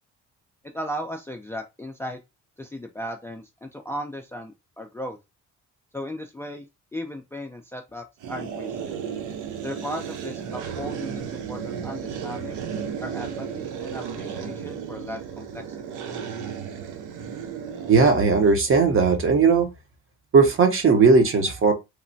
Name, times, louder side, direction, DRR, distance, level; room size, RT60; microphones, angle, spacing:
voice 1, 0.7-2.2 2.6-5.2 5.9-8.9 9.6-11.2 11.5-12.6 13.0-15.6 15.9-16.0, equal, 10° left, 0.3 m, -36 dB
sound 1, 8.2-18.7, right 7 dB, 90° right, 0.5 m, -34 dB
voice 2, 17.9-19.7 20.3-21.7, right 4 dB, 45° right, 0.8 m, -17 dB
3.1 x 2.1 x 2.6 m
cardioid pair, 90°, 30 cm